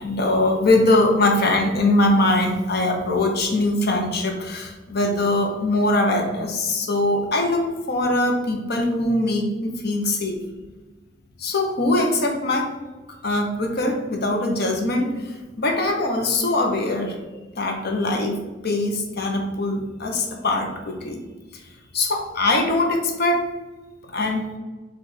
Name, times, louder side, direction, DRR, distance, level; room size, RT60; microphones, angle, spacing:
voice 1, 0.0-10.4 11.4-12.7 13.2-17.2 17.5-21.2 21.5-21.6 21.9-23.4 24.1-24.6, left 2 dB, 60° left, 2 dB, 0.8 m, -22 dB
4.9 x 2.4 x 4.1 m, 1.2 s
head